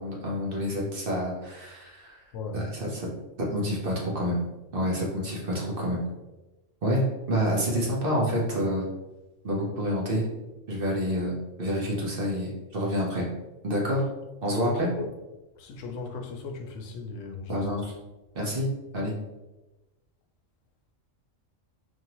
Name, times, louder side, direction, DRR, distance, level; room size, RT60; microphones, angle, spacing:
voice 1, 0.0-2.2 2.5-3.1 3.5-4.4 4.7-6.0 6.8-8.8 9.4-10.3 10.7-13.3 13.6-14.0 14.4-14.9 17.5-17.9 18.3-18.7 18.9-19.1, equal, 50° right, -2 dB, 0.9 m, -28 dB
voice 2, 2.3-2.6 14.6-15.1 15.6-17.8, left 4 dB, 75° left, 3 dB, 0.9 m, -37 dB
4.6 x 2.7 x 2.9 m, 1.1 s
omnidirectional pair, 1.3 m